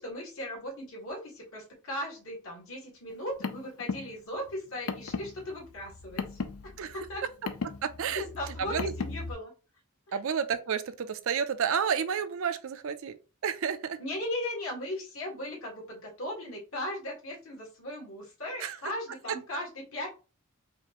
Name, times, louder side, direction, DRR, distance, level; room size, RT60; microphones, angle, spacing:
voice 1, 0.0-6.4 6.9-7.2 8.1-9.5 10.1-10.2 14.0-20.1, left 1 dB, 65° left, 1.7 m, -37 dB
Car, 3.1-9.3, left 4 dB, 85° left, 0.5 m, -37 dB
voice 2, 7.8-8.9 10.1-13.2 13.4-14.0 18.6-18.8, right 7 dB, 65° right, 0.4 m, -31 dB
4.9 x 2.5 x 2.9 m
head